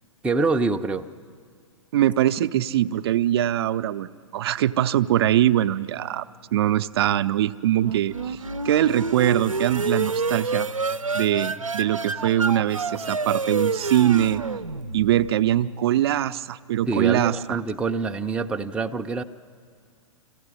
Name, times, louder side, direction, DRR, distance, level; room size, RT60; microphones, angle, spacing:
voice 1, 0.2-1.1 16.9-19.2, right 3 dB, 5° right, 4 dB, 0.6 m, -25 dB
voice 2, 1.9-6.2 6.5-8.4 8.6-10.7 11.1-14.4 14.9-17.4, right 12 dB, 50° right, 10 dB, 0.6 m, -22 dB
sound 1, 7.8-15.5, right 4 dB, 85° right, 0.7 m, -28 dB
26.0 x 15.5 x 9.8 m, 2.1 s
figure-of-eight pair, 105°, 17 cm